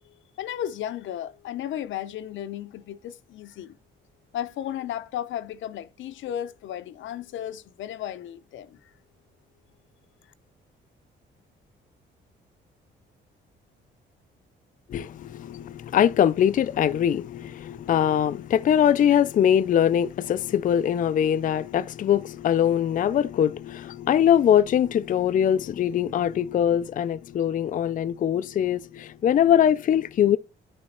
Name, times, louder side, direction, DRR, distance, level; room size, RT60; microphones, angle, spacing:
voice 1, 0.0-3.8 4.3-8.9, left 11 dB, 75° left, 0.7 m, -34 dB
voice 2, 14.9-30.4, left 9 dB, 45° left, 0.4 m, -22 dB
9.8 x 3.4 x 4.3 m
cardioid pair, 90°, 20 cm